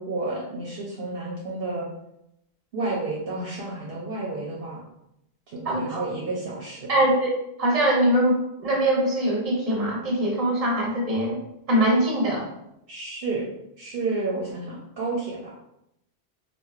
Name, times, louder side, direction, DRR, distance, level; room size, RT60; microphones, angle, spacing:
voice 1, 0.0-1.9 2.7-4.8 5.5-7.0 12.9-13.5 13.8-15.5, right 3 dB, 65° right, -4 dB, 0.8 m, -31 dB
voice 2, 5.6-6.0 6.9-7.3 7.6-11.4 11.7-12.5, right 1 dB, 40° right, -3 dB, 0.9 m, -22 dB
4.4 x 2.3 x 2.4 m, 0.83 s
omnidirectional pair, 1.1 m